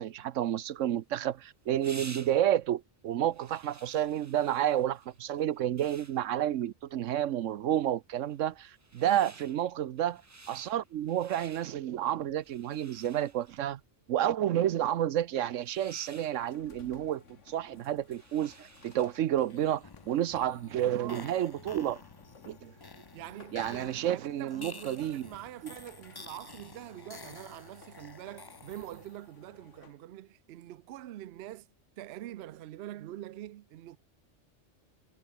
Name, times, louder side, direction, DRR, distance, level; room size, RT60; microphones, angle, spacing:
voice 1, 0.0-10.2 10.5-13.8 14.1-22.0 22.5-22.7 23.5-25.2 25.6-25.7, right 11 dB, 80° right, 1.0 m, -30 dB
sound 1, 0.8-19.3, right 3 dB, 15° right, 0.6 m, -54 dB
voice 2, 9.0-9.3 20.9-21.4 23.1-31.7 32.0-34.0, right 13 dB, 65° right, 0.7 m, -45 dB
sound 2, 16.3-30.1, left 5 dB, 70° left, 2.1 m, -58 dB
sound 3, 19.4-29.3, left 3 dB, 20° left, 0.7 m, -50 dB
omnidirectional pair, 1.3 m